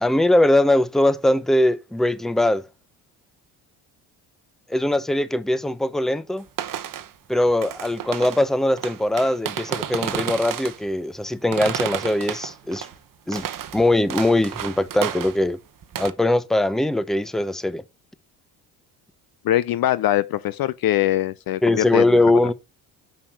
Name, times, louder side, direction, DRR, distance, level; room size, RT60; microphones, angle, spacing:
voice 1, 0.0-2.6 4.7-6.4 7.3-12.9 13.3-13.5 13.7-15.6 16.0-17.8 21.6-22.5, left 1 dB, ahead, 0.7 m, -21 dB
sound 1, 6.5-7.1 7.4-8.5 8.8-10.8 11.5-13.0 13.3-15.5 15.8-16.1, right 10 dB, 45° right, 0.9 m, -31 dB
voice 2, 19.4-22.3, left 14 dB, 50° left, 0.5 m, -22 dB
6.4 x 5.5 x 6.2 m
hypercardioid pair, 60°, 47 cm